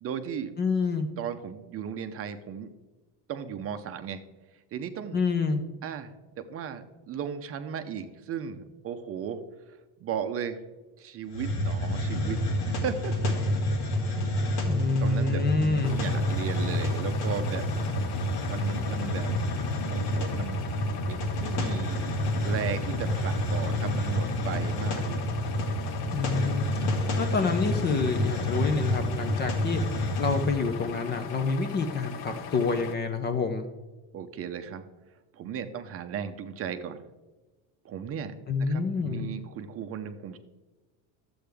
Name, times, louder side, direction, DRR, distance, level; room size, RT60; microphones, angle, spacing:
voice 1, 0.0-0.5 1.2-2.7 3.3-4.2 4.7-5.2 5.8-9.4 10.0-10.6 11.0-12.4 12.7-13.3 15.0-17.7 18.5-19.4 19.9-20.6 21.0-25.3 34.1-34.8 35.3-37.0 37.8-38.3 38.6-40.4, right 7 dB, 35° right, 8 dB, 0.6 m, -36 dB
voice 2, 0.6-1.1 5.1-5.6 14.7-16.1 26.1-26.7 27.2-29.8 30.2-33.7 38.5-39.3, left 4 dB, 25° left, 8 dB, 0.5 m, -27 dB
Hiss, 11.3-30.6, left 1 dB, 85° left, 2.1 m, -29 dB
sound 1, 15.8-33.0, left 6 dB, 60° left, 0.9 m, -40 dB
12.0 x 7.8 x 3.4 m, 1.2 s
cardioid pair, 155°, 42 cm